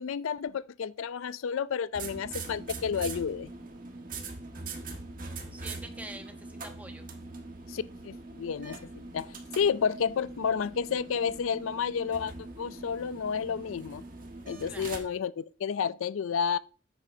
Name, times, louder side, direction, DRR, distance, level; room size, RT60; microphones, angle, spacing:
voice 1, 0.0-3.5 7.7-9.3 9.5-14.0 14.5-16.6, left 6 dB, 85° left, 0.4 m, -31 dB
sound 1, 1.9-15.0, right 3 dB, 45° right, 1.5 m, -42 dB
voice 2, 5.5-7.0 14.7-15.1, right 1 dB, 5° right, 1.0 m, -46 dB
9.6 x 9.0 x 2.7 m
head